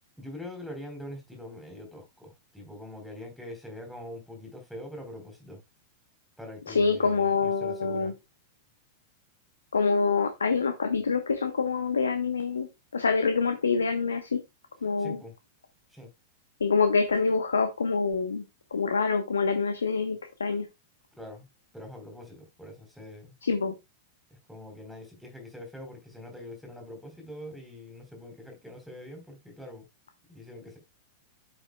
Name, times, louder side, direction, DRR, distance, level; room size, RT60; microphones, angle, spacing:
voice 1, 0.2-5.6 6.4-8.1 15.0-15.3 15.9-16.1 21.2-21.5 21.7-23.3 24.3-29.9 30.3-30.8, left 1 dB, ahead, 4.0 m, -43 dB
voice 2, 6.7-8.1 9.7-12.7 12.9-14.4 14.8-15.2 16.6-18.4 18.7-20.7 23.4-23.7, left 5 dB, 75° left, 1.0 m, -26 dB
8.9 x 7.9 x 2.3 m
figure-of-eight pair, 95°, 0 cm